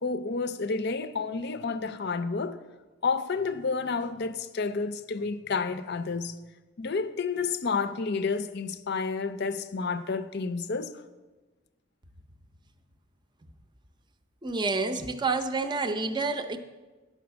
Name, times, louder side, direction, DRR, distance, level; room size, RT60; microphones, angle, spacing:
voice 1, 0.0-2.6 3.0-6.4 6.8-11.0, left 4 dB, 55° left, 0.5 m, -30 dB
voice 2, 14.4-16.6, right 3 dB, 20° right, 0.5 m, -28 dB
10.5 x 5.6 x 7.1 m
head